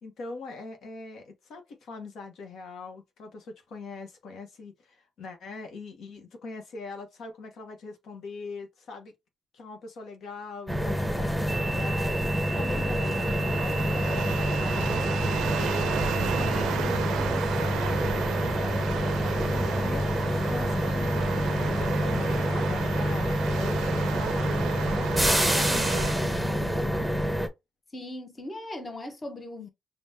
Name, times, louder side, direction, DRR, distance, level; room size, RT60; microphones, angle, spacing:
voice 1, 0.0-9.1 9.5-27.0, left 3 dB, 70° left, 1.1 m, -42 dB
sound 1, 10.7-27.5, equal, ahead, 0.9 m, -27 dB
sound 2, 12.5-26.1, right 10 dB, 85° right, 0.4 m, -34 dB
voice 2, 27.9-29.7, left 1 dB, 25° left, 1.0 m, -38 dB
5.3 x 2.3 x 2.7 m
cardioid pair, 90°, 0 cm